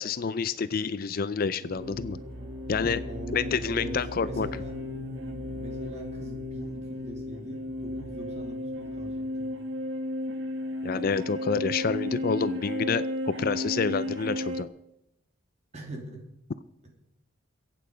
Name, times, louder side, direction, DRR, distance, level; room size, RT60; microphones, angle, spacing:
voice 1, 0.0-2.2 2.7-3.0 3.3-4.5 10.8-14.7, left 5 dB, 45° left, 16 dB, 0.4 m, -28 dB
sound 1, 1.6-14.6, left 1 dB, 65° right, 1.4 m, -34 dB
sound 2, 1.7-9.3, equal, 15° right, 1.7 m, -43 dB
voice 2, 3.0-4.0 4.2-4.8 5.5-9.5 15.7-16.2, right 1 dB, 35° right, 1 dB, 2.9 m, -41 dB
22.5 x 8.6 x 5.0 m, 0.84 s
head